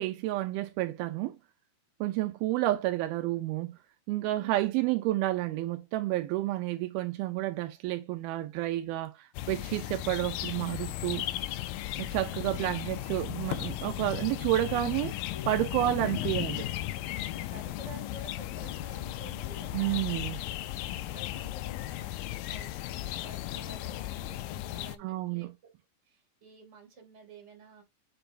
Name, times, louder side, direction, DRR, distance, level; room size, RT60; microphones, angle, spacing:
voice 1, 0.0-1.4 2.0-3.8 4.1-11.2 12.0-15.1 15.5-16.6 19.7-20.4 25.0-25.5, right 15 dB, 80° right, 2.4 m, -30 dB
voice 2, 4.3-5.0 14.2-14.5 15.3-20.6 21.0-25.5 26.0-27.8, right 2 dB, 20° right, 2.3 m, -51 dB
sound 1, 9.3-25.0, left 14 dB, 85° left, 2.0 m, -36 dB
7.9 x 5.4 x 2.6 m
omnidirectional pair, 4.5 m